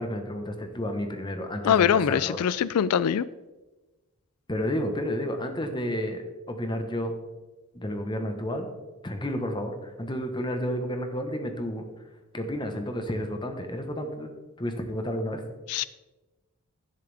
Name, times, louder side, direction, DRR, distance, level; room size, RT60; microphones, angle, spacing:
voice 1, 0.0-2.4 4.5-7.1 7.7-8.7 9.0-11.9 12.3-14.3 14.6-15.4, equal, 20° left, 5 dB, 1.1 m, -31 dB
voice 2, 1.6-3.2 15.7-15.9, left 8 dB, 85° left, 17 dB, 0.3 m, -23 dB
11.5 x 10.5 x 3.5 m, 1.1 s
head